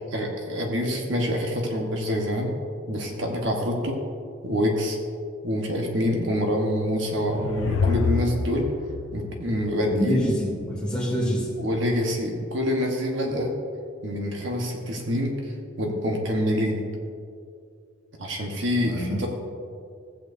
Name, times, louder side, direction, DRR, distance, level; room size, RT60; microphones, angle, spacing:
voice 1, 0.1-2.5 2.9-4.0 4.4-5.0 5.4-8.7 9.1-10.3 11.6-13.5 14.0-15.3 15.8-16.9 18.2-19.3, equal, 70° right, 1 dB, 1.2 m, -26 dB
sound 1, 6.8-10.3, left 5 dB, 85° left, 0.4 m, -28 dB
voice 2, 9.9-11.5 18.8-19.3, equal, 5° left, -5 dB, 2.5 m, -26 dB
15.0 x 8.7 x 2.6 m, 2.3 s
head